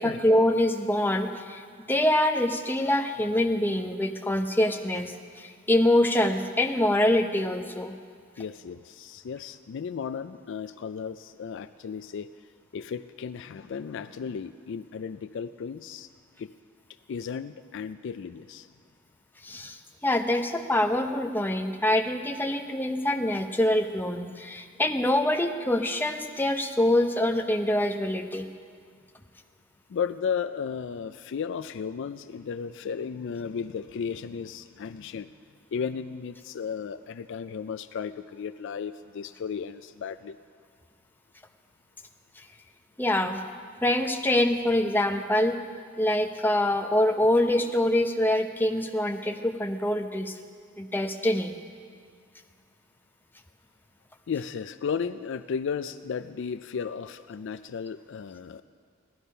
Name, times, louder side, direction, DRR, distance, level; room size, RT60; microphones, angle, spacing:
voice 1, 0.0-1.6 1.9-7.9 19.4-28.5 43.0-43.4 43.8-45.6 46.0-50.3 50.8-51.6, left 1 dB, 10° left, 5 dB, 0.7 m, -25 dB
voice 2, 8.4-12.3 12.7-16.1 16.4-16.5 17.1-18.7 29.9-35.3 35.7-40.4 54.3-58.6, left 6 dB, 60° left, 12 dB, 0.4 m, -34 dB
16.5 x 12.0 x 5.4 m, 2.1 s
head